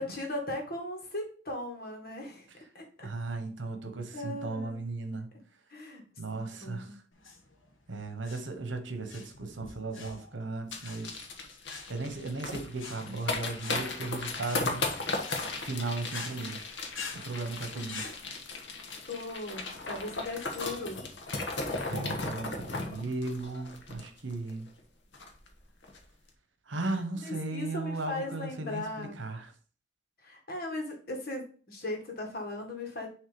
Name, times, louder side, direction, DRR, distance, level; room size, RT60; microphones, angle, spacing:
voice 1, 0.0-2.5 2.7-3.1 4.1-4.8 5.7-6.0 6.3-7.0 17.7-17.9 19.1-21.1 27.2-29.2 30.2-33.1, left 2 dB, 50° left, 1.8 m, -38 dB
voice 2, 3.0-5.6 6.2-7.0 7.9-11.3 11.9-14.8 15.6-16.6 17.1-18.0 21.9-24.7 26.6-29.5, right 3 dB, 70° right, 1.1 m, -36 dB
sound 1, 7.1-18.2, left 4 dB, 85° left, 1.5 m, -46 dB
sound 2, 10.7-24.5 24.8-24.9 25.1-25.5 25.8-26.0, left 3 dB, 70° left, 1.2 m, -36 dB
6.5 x 3.3 x 5.1 m
head